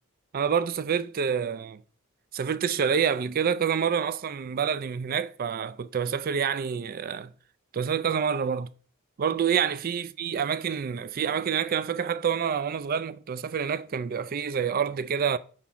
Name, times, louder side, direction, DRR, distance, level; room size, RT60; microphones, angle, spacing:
voice 1, 0.3-1.8 2.3-7.3 7.7-8.7 9.2-15.4, right 7 dB, 40° right, 0.3 m, -27 dB
6.0 x 3.6 x 5.6 m
head